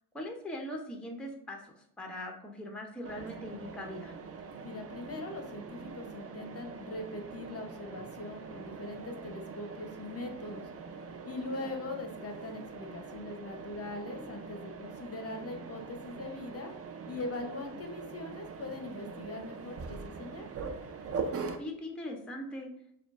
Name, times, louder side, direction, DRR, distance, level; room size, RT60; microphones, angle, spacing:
voice 1, 0.1-4.2 11.6-11.7 21.5-22.7, left 1 dB, 5° left, 1 dB, 0.6 m, -41 dB
Mechanisms, 3.0-21.6, right 5 dB, 35° right, 0.5 m, -43 dB
voice 2, 4.6-10.7 11.2-16.7 17.1-20.5, left 2 dB, 35° left, 4 dB, 0.7 m, -41 dB
6.6 x 2.3 x 2.4 m, 0.73 s
cardioid pair, 95°, 40 cm